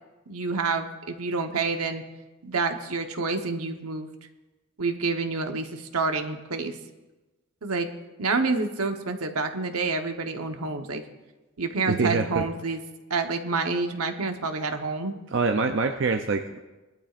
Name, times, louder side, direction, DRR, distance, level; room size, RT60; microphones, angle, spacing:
voice 1, 0.3-2.0 2.4-4.1 4.8-6.8 7.6-7.9 8.2-11.0 11.6-12.8 13.1-15.1, right 4 dB, 85° right, 6 dB, 1.1 m, -28 dB
voice 2, 11.9-12.4 15.3-16.6, right 4 dB, 55° right, 5 dB, 0.5 m, -25 dB
20.5 x 12.0 x 2.5 m, 1.1 s
head